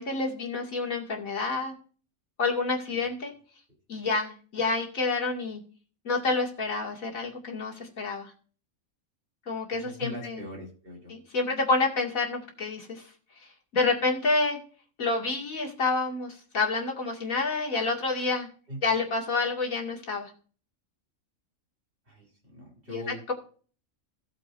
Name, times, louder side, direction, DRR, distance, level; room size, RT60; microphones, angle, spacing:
voice 1, 0.0-1.7 2.4-3.3 3.9-5.6 6.0-8.3 9.5-10.4 11.1-13.0 13.7-14.6 15.0-18.5 18.8-20.3 22.9-23.0 23.3-23.4, left 3 dB, 80° left, 0 dB, 2.8 m, -28 dB
voice 2, 9.8-11.1 18.7-18.8 22.1-23.3, equal, 40° right, -1 dB, 3.8 m, -41 dB
17.0 x 7.4 x 2.6 m, 0.39 s
omnidirectional pair, 1.4 m